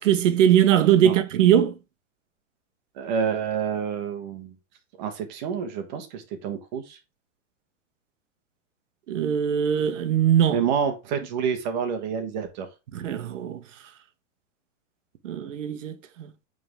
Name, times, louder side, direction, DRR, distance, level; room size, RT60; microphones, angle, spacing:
voice 1, 0.0-1.7 9.1-10.6 12.9-13.6 15.2-16.3, right 10 dB, 70° right, 1.3 m, -21 dB
voice 2, 3.0-4.5 5.0-7.0 10.5-12.7, right 7 dB, 35° right, 1.3 m, -28 dB
9.1 x 4.0 x 3.5 m
supercardioid pair, 170°, 39 cm